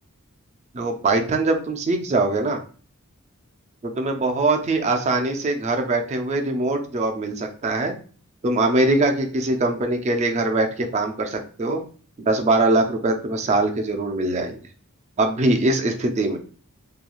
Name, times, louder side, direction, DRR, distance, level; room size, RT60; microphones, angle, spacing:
voice 1, 0.7-2.6 3.8-7.9 8.4-11.8 12.2-14.6 15.2-16.4, right 2 dB, 30° right, 4 dB, 0.3 m, -22 dB
2.9 x 2.3 x 2.3 m, 0.41 s
head